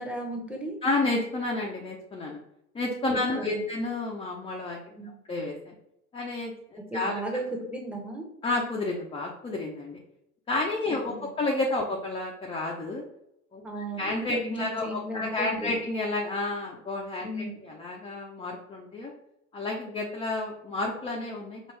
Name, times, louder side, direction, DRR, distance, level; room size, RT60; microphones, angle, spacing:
voice 1, 0.0-0.8 3.1-3.6 4.9-5.2 6.9-8.3 11.2-11.3 13.6-15.8 17.2-17.6, right 1 dB, 5° right, 0 dB, 0.9 m, -35 dB
voice 2, 0.8-2.4 2.7-4.8 5.3-5.7 6.1-7.2 8.4-10.0 10.5-13.0 13.5-13.6 14.0-19.1 19.5-21.7, left 2 dB, 15° left, -1 dB, 0.5 m, -30 dB
4.5 x 2.4 x 3.2 m, 0.80 s
hypercardioid pair, 85°, 42 cm